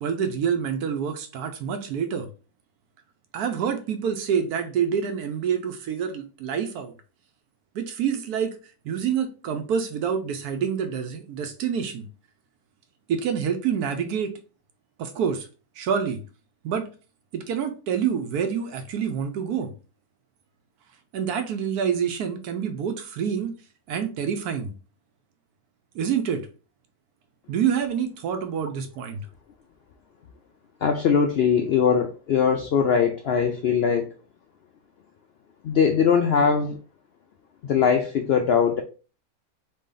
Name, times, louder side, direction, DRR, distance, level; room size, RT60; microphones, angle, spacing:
voice 1, 0.0-2.3 3.3-6.9 7.7-8.6 8.8-12.1 13.1-14.3 15.0-15.5 15.8-16.2 16.6-16.9 17.3-19.7 21.1-23.5 23.9-24.7 25.9-26.4 27.5-29.3, right 7 dB, 85° right, 1.2 m, -27 dB
voice 2, 30.8-34.1 35.6-36.8 37.6-38.8, left 6 dB, 80° left, 0.5 m, -21 dB
4.2 x 3.2 x 3.8 m
omnidirectional pair, 1.6 m